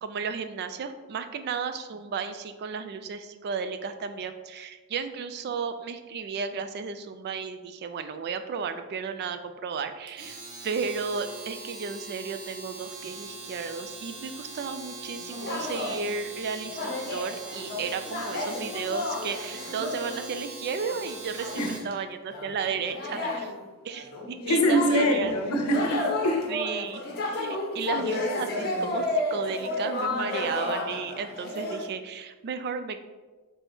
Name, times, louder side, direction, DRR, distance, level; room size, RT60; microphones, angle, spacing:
voice 1, 0.0-10.4 10.6-23.5 23.8-25.3 26.5-29.1 29.3-33.0, right 5 dB, 45° right, 9 dB, 0.3 m, -34 dB
Domestic sounds home sounds, 10.1-21.9, right 3 dB, 85° right, 0.8 m, -41 dB
sound 1, 15.1-16.0 16.6-20.3 20.8-21.1 21.4-21.8 22.3-31.9, left 2 dB, 45° left, 0.7 m, -32 dB
voice 2, 24.5-26.5, equal, 90° left, 4 dB, 0.7 m, -24 dB
4.1 x 3.4 x 3.5 m, 1.3 s
head